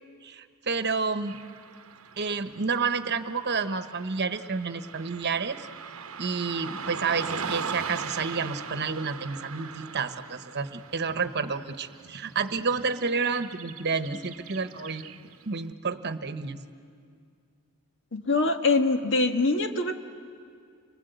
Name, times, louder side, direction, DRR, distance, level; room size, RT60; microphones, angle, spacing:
voice 1, 0.2-1.4 2.2-5.7 6.2-15.0 15.4-16.6, right 5 dB, 50° right, 9 dB, 1.1 m, -30 dB
Car passing by / Traffic noise roadway noise, 1.2-15.5, right 6 dB, 65° right, 1.0 m, -40 dB
voice 2, 18.1-20.0, left 3 dB, 55° left, 6 dB, 1.5 m, -24 dB
30.0 x 24.5 x 8.1 m, 2.3 s
head